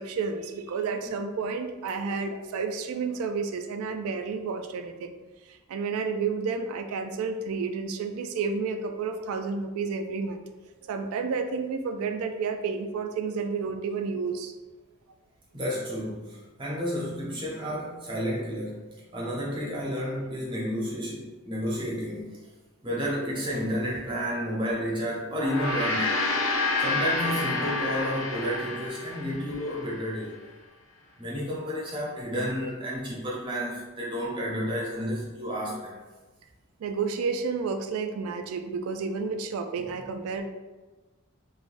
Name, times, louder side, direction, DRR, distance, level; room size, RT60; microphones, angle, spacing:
voice 1, 0.0-5.1 5.5-10.4 10.8-14.6 29.4-29.6 36.8-40.4, right 5 dB, 90° right, 7 dB, 0.3 m, -31 dB
voice 2, 15.5-18.8 19.1-22.4 22.8-26.1 26.8-30.3 31.2-36.0 39.8-39.9, equal, 25° right, -5 dB, 0.7 m, -31 dB
Gong, 25.3-29.9, left 3 dB, 65° left, 0.4 m, -29 dB
3.2 x 2.2 x 2.5 m, 1.2 s
head